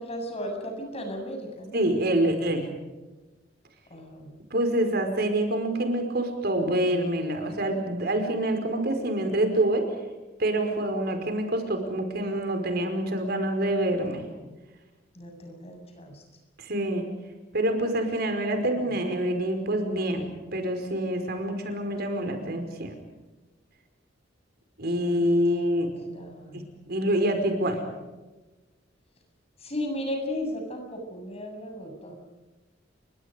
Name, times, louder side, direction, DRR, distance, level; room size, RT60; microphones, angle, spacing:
voice 1, 0.0-1.8 3.9-4.3 15.1-16.2 18.7-18.9 25.2-25.3 26.1-26.7 29.6-32.2, left 1 dB, 35° left, 4 dB, 7.4 m, -35 dB
voice 2, 1.7-2.7 4.5-9.8 10.4-14.3 16.6-17.0 17.5-23.0 24.8-25.9 26.5-27.8, right 1 dB, 60° right, 6 dB, 5.1 m, -26 dB
30.0 x 25.0 x 5.3 m, 1.1 s
head